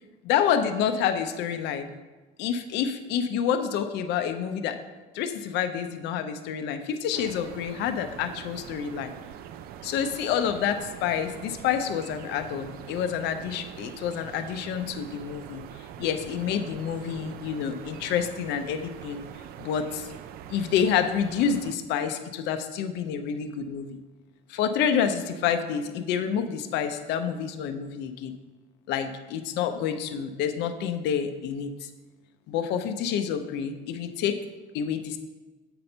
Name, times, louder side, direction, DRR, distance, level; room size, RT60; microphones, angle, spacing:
voice 1, 0.2-1.9 2.4-4.8 5.1-9.1 9.8-15.6 16.0-19.2 19.6-20.1 20.5-24.0 24.5-28.4 28.9-31.9 32.5-34.4 34.7-35.2, left 8 dB, 65° left, 8 dB, 0.6 m, -28 dB
sound 1, 7.1-21.7, right 10 dB, 50° right, 0.4 m, -43 dB
7.6 x 4.3 x 5.4 m, 1.2 s
cardioid pair, 175°, 20 cm